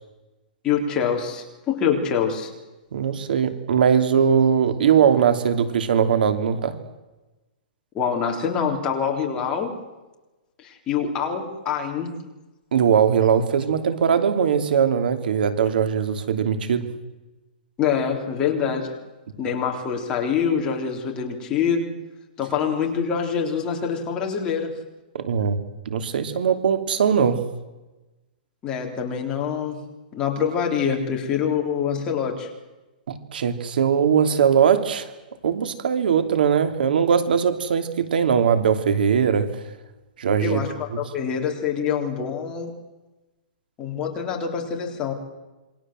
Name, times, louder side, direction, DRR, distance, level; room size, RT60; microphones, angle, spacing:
voice 1, 0.6-2.5 7.9-9.7 10.6-12.1 17.8-18.9 19.4-21.9 22.4-24.8 28.6-29.8 30.1-32.5 40.4-42.7 43.8-45.1, left 7 dB, 15° left, 1 dB, 3.7 m, -25 dB
voice 2, 2.9-6.8 12.7-16.9 25.1-25.6 25.9-27.4 33.1-35.1 35.4-39.5 40.2-40.6 40.9-41.0, right 7 dB, 75° right, 9 dB, 3.1 m, -20 dB
27.5 x 24.0 x 7.8 m, 1.1 s
hypercardioid pair, 165°, 5 cm